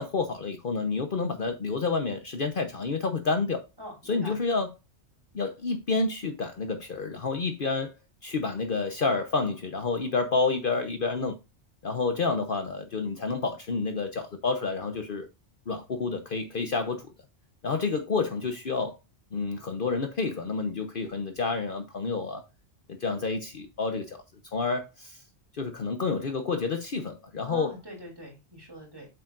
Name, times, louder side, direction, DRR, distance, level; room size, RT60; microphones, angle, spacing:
voice 1, 0.0-3.6 4.1-4.7 5.3-7.9 8.2-11.4 11.8-15.3 15.7-17.0 17.6-19.0 19.3-22.4 22.9-24.2 24.5-25.2 25.5-27.7, left 4 dB, 50° left, 1.0 m, -29 dB
voice 2, 3.8-4.4 27.4-29.1, equal, 20° right, 3.1 m, -44 dB
7.8 x 7.0 x 2.5 m
omnidirectional pair, 1.2 m